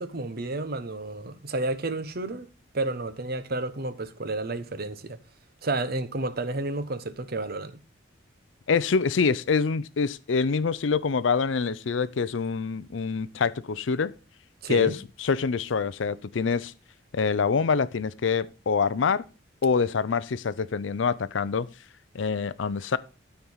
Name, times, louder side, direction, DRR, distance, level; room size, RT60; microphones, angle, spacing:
voice 1, 0.0-2.5 2.7-5.2 5.6-7.8 14.6-15.0, right 2 dB, 55° right, 1.0 m, -31 dB
voice 2, 8.7-14.1 14.7-16.7 17.1-19.2 19.6-21.7 22.1-23.0, left 5 dB, 80° left, 0.5 m, -25 dB
12.5 x 4.6 x 5.5 m
head